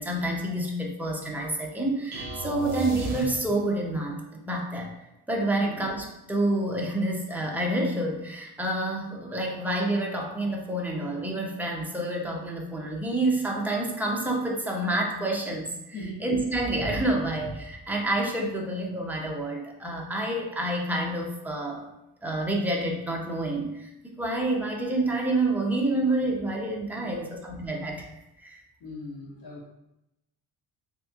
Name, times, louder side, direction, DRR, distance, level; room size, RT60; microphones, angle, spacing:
voice 1, 0.0-4.2 4.4-4.9 5.3-15.7 16.2-21.9 22.2-23.9 24.2-28.1 28.4-28.6, right 1 dB, 5° right, -1 dB, 0.3 m, -28 dB
sound 1, 2.1-3.8, right 2 dB, 40° right, 0.7 m, -35 dB
voice 2, 27.0-27.3 28.8-29.7, left 1 dB, 60° left, -4 dB, 1.2 m, -40 dB
3.3 x 2.8 x 2.7 m, 0.87 s
cardioid pair, 150°, 41 cm